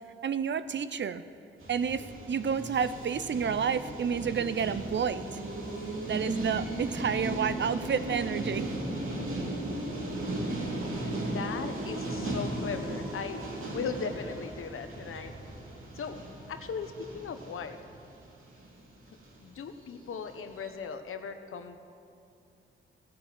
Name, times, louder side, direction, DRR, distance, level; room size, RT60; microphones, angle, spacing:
voice 1, 0.2-1.2 1.7-5.4 6.1-8.7, right 7 dB, 60° right, 13 dB, 0.7 m, -30 dB
sound 1, 1.6-18.9 19.2-19.5 19.8-19.9 20.1-20.3 20.6-20.7, right 1 dB, 80° right, 3.1 m, -36 dB
voice 2, 11.1-15.3 15.9-16.2 16.5-17.8 19.1-21.8, left 5 dB, 85° left, 8 dB, 1.1 m, -38 dB
16.0 x 11.5 x 7.5 m, 2.6 s
cardioid pair, 70°, 21 cm